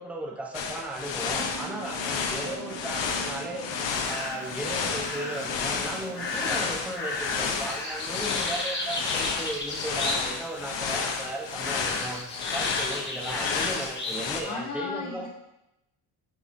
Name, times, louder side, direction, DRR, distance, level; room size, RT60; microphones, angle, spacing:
voice 1, 0.0-15.3, right 1 dB, 5° right, -2 dB, 0.8 m, -36 dB
sound 1, 0.5-14.4, left 6 dB, 85° left, 0.9 m, -31 dB
sound 2, 1.3-6.6, right 3 dB, 35° right, 1.4 m, -42 dB
sound 3, 4.0-4.5 5.0-5.6 6.1-10.5 10.7-11.3 11.6-14.2, left 2 dB, 25° left, 1.2 m, -34 dB
voice 2, 14.4-15.3, left 4 dB, 45° left, -3 dB, 1.4 m, -35 dB
9.4 x 4.4 x 2.6 m, 0.88 s
wide cardioid pair, 170°, 43 cm